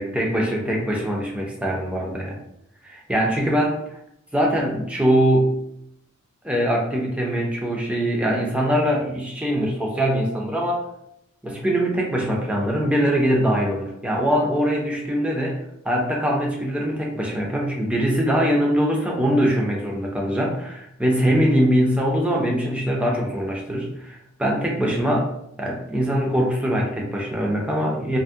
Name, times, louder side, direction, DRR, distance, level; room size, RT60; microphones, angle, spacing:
voice 1, 0.0-2.4 2.8-3.8 4.3-5.6 6.4-10.9 11.4-25.3 25.6-28.2, equal, 5° right, -2 dB, 0.5 m, -22 dB
2.5 x 2.1 x 3.4 m, 0.78 s
head